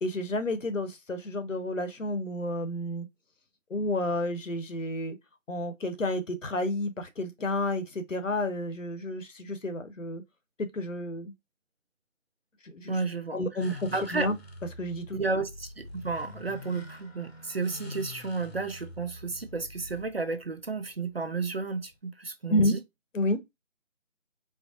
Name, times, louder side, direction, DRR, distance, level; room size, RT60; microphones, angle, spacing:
voice 1, 0.0-3.1 3.7-5.2 5.5-10.2 10.7-11.3 12.7-13.0 13.3-13.7 14.1-14.4 14.8-15.4 22.5-22.7 23.1-23.4, left 1 dB, 70° left, 1.1 m, -30 dB
voice 2, 12.9-13.4 13.9-14.3 15.1-22.8, right 4 dB, 50° right, 0.4 m, -32 dB
sound 1, 13.6-22.0, left 2 dB, 50° left, 0.9 m, -46 dB
4.5 x 2.1 x 2.7 m
figure-of-eight pair, 165°, 39 cm